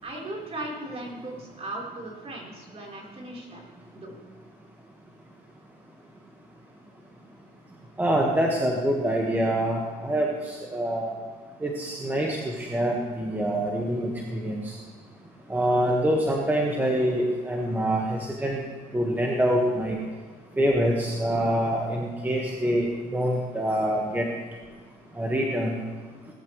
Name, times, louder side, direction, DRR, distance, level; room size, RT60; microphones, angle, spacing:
voice 1, 0.0-3.7 3.9-4.2, right 1 dB, 35° right, -2 dB, 4.2 m, -37 dB
voice 2, 8.0-11.1 11.6-14.7 15.5-18.6 18.9-20.0 20.6-24.3 25.1-25.8, right 1 dB, 10° right, -1 dB, 1.7 m, -25 dB
18.5 x 13.0 x 3.3 m, 1.5 s
cardioid pair, 110°, 17 cm